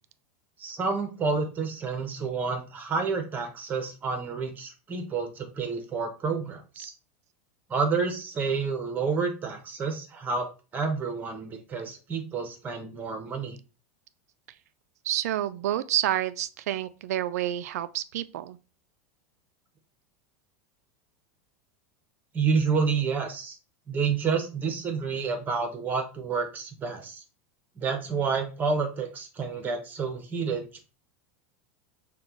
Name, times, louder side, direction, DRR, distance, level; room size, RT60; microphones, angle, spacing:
voice 1, 0.6-6.9 7.7-10.5 10.7-13.6 22.3-23.6 23.9-27.2 27.8-30.8, right 5 dB, 20° right, 1.0 m, -29 dB
voice 2, 15.0-18.6, right 12 dB, 85° right, 0.4 m, -29 dB
6.2 x 2.4 x 3.0 m
supercardioid pair, 140°, 8 cm